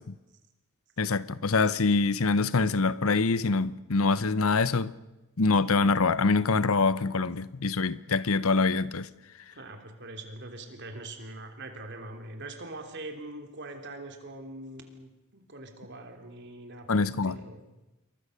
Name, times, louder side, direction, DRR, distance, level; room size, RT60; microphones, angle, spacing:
voice 1, 1.0-4.9 5.4-9.1 16.9-17.4, left 4 dB, 70° left, 0.8 m, -25 dB
voice 2, 9.5-17.6, right 2 dB, 50° right, 3.3 m, -43 dB
28.0 x 22.5 x 6.6 m
head